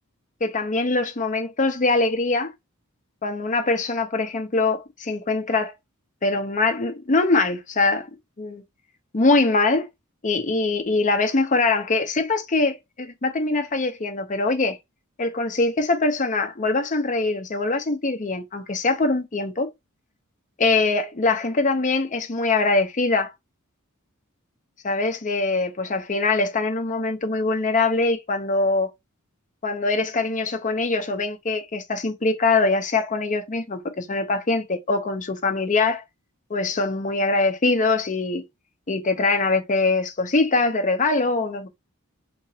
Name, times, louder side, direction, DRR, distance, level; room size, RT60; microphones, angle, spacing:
voice 1, 0.4-2.5 3.2-5.7 6.2-8.1 8.4-8.6 9.1-9.9 10.2-14.8 15.2-19.7 20.6-23.3 24.8-28.9 29.6-36.0 36.5-38.4 38.9-41.7, left 3 dB, 35° left, 0.7 m, -23 dB
3.7 x 2.9 x 2.8 m
head